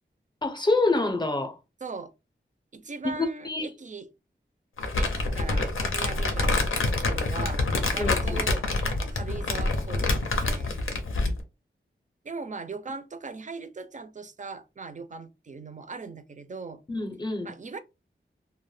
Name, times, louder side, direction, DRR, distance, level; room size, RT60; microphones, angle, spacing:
voice 1, 0.4-1.6 3.2-3.7 8.0-8.4 16.9-17.5, left 2 dB, 20° left, 0.5 m, -26 dB
voice 2, 1.8-2.1 2.7-4.1 5.0-7.7 7.9-10.7 12.2-16.8 17.4-17.8, right 4 dB, 40° right, 0.4 m, -39 dB
Crumpling crinkling, 4.8-11.4, left 2 dB, 85° left, 0.5 m, -26 dB
2.1 x 2.1 x 3.1 m
wide cardioid pair, 55°, 20 cm